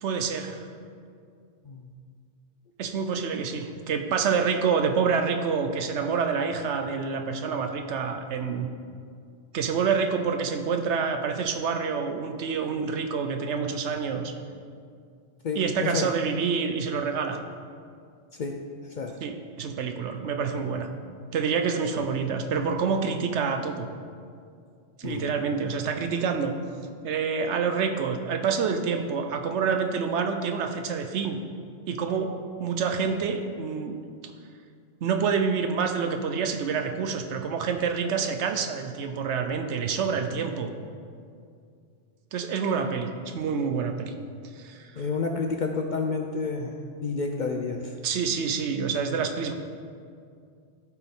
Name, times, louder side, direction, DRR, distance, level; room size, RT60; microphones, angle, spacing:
voice 1, 0.0-0.6 2.8-8.7 9.5-14.3 15.6-17.5 19.2-20.9 21.3-23.9 25.0-26.5 27.0-31.4 31.9-32.3 32.6-34.0 35.0-40.7 42.3-44.1 44.6-45.1 48.0-49.5, right 6 dB, 75° right, 6 dB, 1.0 m, -27 dB
voice 2, 15.4-16.1 18.3-19.2 21.9-22.0 25.0-25.3 45.0-48.0, left 4 dB, 60° left, 3 dB, 0.5 m, -30 dB
13.5 x 4.6 x 3.6 m, 2.2 s
omnidirectional pair, 1.2 m